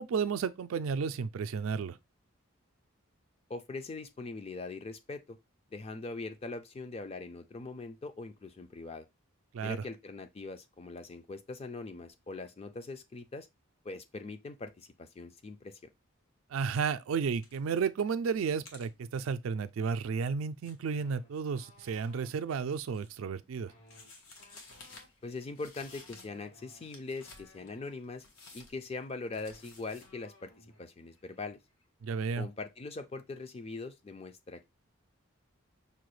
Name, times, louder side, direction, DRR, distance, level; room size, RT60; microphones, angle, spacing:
voice 1, 0.0-2.0 9.5-9.8 16.5-23.7 32.0-32.5, right 5 dB, 75° right, 0.3 m, -32 dB
voice 2, 3.5-5.4 5.7-9.1 9.6-13.5 13.8-15.8 25.2-28.2 28.5-31.6 32.4-34.7, left 3 dB, 30° left, 0.4 m, -42 dB
sound 1, 17.4-17.8 18.2-22.2 22.6-23.4 23.9-26.4 26.7-30.1, left 3 dB, 90° left, 1.0 m, -55 dB
sound 2, 20.9-22.3 23.6-28.0 28.9-29.0 29.2-30.9 31.2-31.4 31.7-32.2, left 2 dB, 65° left, 1.1 m, -60 dB
5.5 x 2.2 x 3.1 m
head